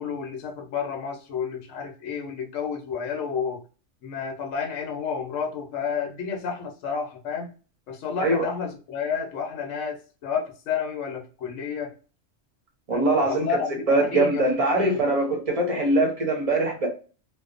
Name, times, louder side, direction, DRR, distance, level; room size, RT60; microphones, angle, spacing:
voice 1, 0.0-3.6 4.0-7.5 7.9-11.9 12.9-14.5 14.7-15.0, left 6 dB, 80° left, 1.0 m, -31 dB
voice 2, 12.9-13.5 13.9-16.9, right 2 dB, 35° right, 0.6 m, -22 dB
2.7 x 2.0 x 2.4 m
omnidirectional pair, 1.3 m